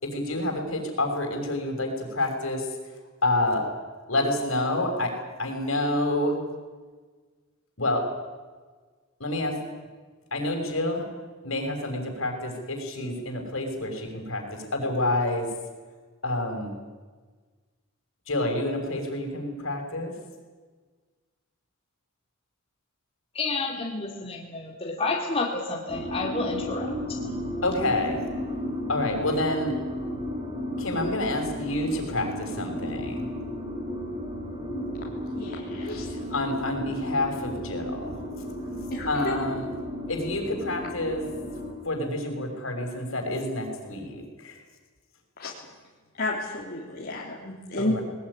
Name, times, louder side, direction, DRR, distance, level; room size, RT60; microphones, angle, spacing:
voice 1, 0.0-2.7 3.2-3.6 4.1-5.1 5.4-6.4 7.8-8.1 9.2-9.6 10.3-11.0 11.4-15.5 16.2-16.7 18.3-20.1 27.6-28.2 28.9-29.7 30.8-33.3 36.1-38.2 39.0-39.7 40.1-41.2 41.8-44.6 47.8-48.0, left 1 dB, 70° left, 3 dB, 6.2 m, -28 dB
voice 2, 23.3-27.4, left 3 dB, 30° left, 0 dB, 2.4 m, -30 dB
sound 1, 25.9-41.7, left 1 dB, 25° right, 5.0 m, -34 dB
voice 3, 35.3-36.1 38.9-39.1 45.4-45.5 46.2-48.0, left 2 dB, 50° left, -4 dB, 3.4 m, -31 dB
20.5 x 20.5 x 9.9 m, 1.4 s
head